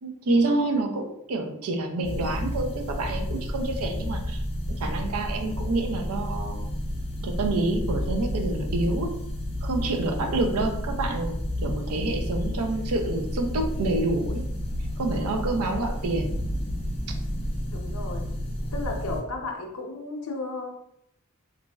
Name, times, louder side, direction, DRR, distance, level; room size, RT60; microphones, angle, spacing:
voice 1, 0.0-4.4 4.7-6.8 7.2-9.1 9.6-14.4 15.0-16.3, right 2 dB, 75° right, 4 dB, 0.5 m, -28 dB
sound 1, 2.0-19.2, equal, 25° left, 0.6 m, -31 dB
voice 2, 10.1-10.4 11.6-11.8 17.7-18.3 18.7-20.7, left 2 dB, 70° left, 2 dB, 0.6 m, -34 dB
3.0 x 2.5 x 2.3 m, 0.76 s
head